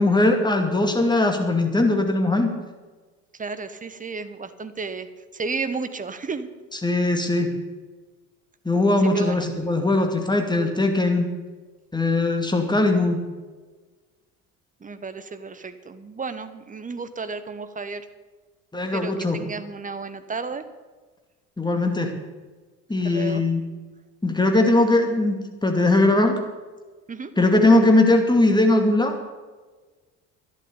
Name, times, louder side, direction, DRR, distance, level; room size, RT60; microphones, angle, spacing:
voice 1, 0.0-2.5 6.7-7.5 8.6-11.3 11.9-13.2 18.7-19.4 21.6-22.1 22.9-23.6 24.2-26.4 27.4-29.2, left 2 dB, 10° left, 4 dB, 2.4 m, -20 dB
voice 2, 3.4-5.1 5.3-6.5 9.1-9.5 14.8-18.0 18.9-20.6 23.0-23.4 27.1-27.3, right 4 dB, 20° right, 11 dB, 1.1 m, -32 dB
11.5 x 11.5 x 7.1 m, 1.3 s
figure-of-eight pair, 60°, 43 cm